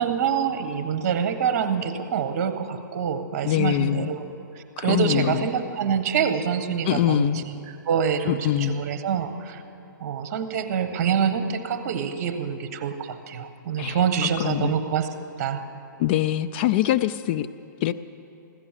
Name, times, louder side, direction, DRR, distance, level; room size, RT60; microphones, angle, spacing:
voice 1, 0.0-4.2 4.5-7.4 7.8-9.6 10.0-15.1 15.4-15.6, right 7 dB, 45° right, 9 dB, 1.3 m, -26 dB
voice 2, 3.4-4.1 4.8-5.5 6.9-7.4 8.3-8.8 13.8-14.7 16.0-17.5 17.8-17.9, left 13 dB, 30° left, 12 dB, 0.3 m, -24 dB
16.0 x 12.0 x 7.4 m, 2.8 s
hypercardioid pair, 145°, 11 cm